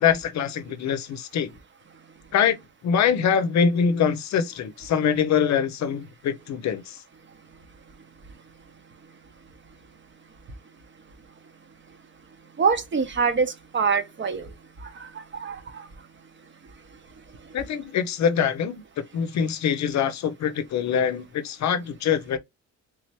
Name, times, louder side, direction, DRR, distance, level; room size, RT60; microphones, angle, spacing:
voice 1, 0.0-1.5 2.3-7.0 17.5-18.8 19.1-22.4, left 7 dB, 65° left, 0.7 m, -24 dB
voice 2, 12.6-14.4 15.3-15.6, right 5 dB, 40° right, 1.0 m, -24 dB
3.4 x 3.2 x 3.0 m
cardioid pair, 90°, 30 cm